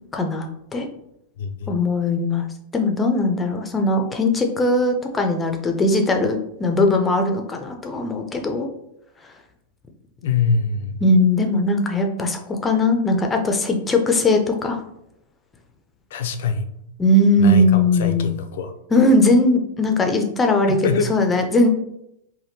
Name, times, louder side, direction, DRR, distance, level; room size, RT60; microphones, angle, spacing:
voice 1, 0.1-0.9 1.7-2.5 2.7-8.7 11.0-14.8 17.0-18.3 18.9-21.7, left 2 dB, 15° left, 4 dB, 0.5 m, -19 dB
voice 2, 1.4-1.7 10.2-11.0 16.1-16.7 17.4-18.7 20.8-21.1, left 5 dB, 70° left, 8 dB, 0.4 m, -24 dB
3.4 x 2.2 x 2.7 m, 0.79 s
hypercardioid pair, 120°, 0 cm